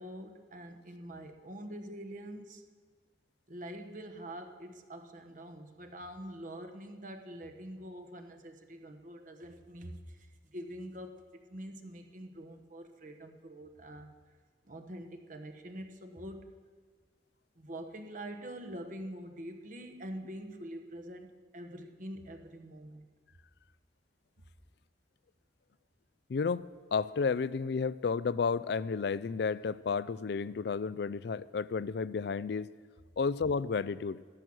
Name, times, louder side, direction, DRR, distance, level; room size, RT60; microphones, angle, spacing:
voice 1, 0.0-2.6 3.5-14.1 14.6-16.6 17.5-23.0, right 1 dB, 45° right, 1.1 m, -45 dB
voice 2, 26.3-26.7 26.9-32.7 33.2-34.2, left 5 dB, 60° left, 0.4 m, -32 dB
14.0 x 12.5 x 6.2 m
head